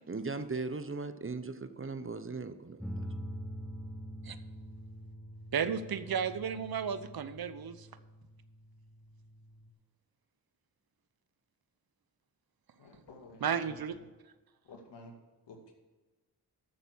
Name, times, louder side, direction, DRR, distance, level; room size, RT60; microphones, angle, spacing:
voice 1, 0.1-2.8, right 3 dB, 30° right, 11 dB, 1.0 m, -38 dB
sound 1, 2.8-9.7, equal, ahead, 1.5 m, -45 dB
voice 2, 5.5-7.9 13.4-13.9, right 7 dB, 60° right, 12 dB, 0.9 m, -33 dB
voice 3, 12.8-14.1 14.6-15.2 15.5-15.7, left 2 dB, 80° left, 2 dB, 2.2 m, -52 dB
13.5 x 6.7 x 4.6 m, 1.2 s
supercardioid pair, 45°, 42 cm